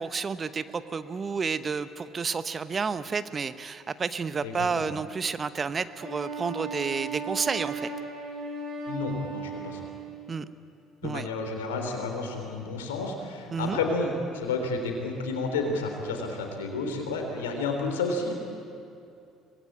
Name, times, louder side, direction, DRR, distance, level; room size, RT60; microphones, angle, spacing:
voice 1, 0.0-7.9 10.3-10.5 11.0-11.3 13.5-13.8, right 5 dB, 35° right, 13 dB, 1.0 m, -30 dB
voice 2, 4.4-4.9 8.9-9.9 11.0-18.3, left 3 dB, 80° left, 3 dB, 3.5 m, -31 dB
Wind instrument woodwind instrument, 6.0-10.3, right 4 dB, 55° right, 5.0 m, -36 dB
24.5 x 20.5 x 8.8 m, 2.6 s
figure-of-eight pair, 55°, 0 cm